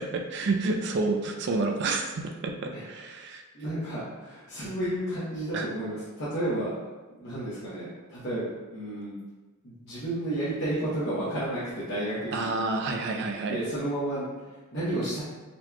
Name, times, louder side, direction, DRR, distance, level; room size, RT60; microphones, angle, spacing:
voice 1, 0.0-3.4 5.5-5.7 12.3-13.6, right 3 dB, 50° right, 3 dB, 0.4 m, -29 dB
voice 2, 3.5-6.7 7.2-8.4 8.7-9.2 9.6-12.5 13.5-15.2, right 1 dB, 55° left, -11 dB, 0.9 m, -32 dB
4.1 x 3.0 x 2.2 m, 1.2 s
head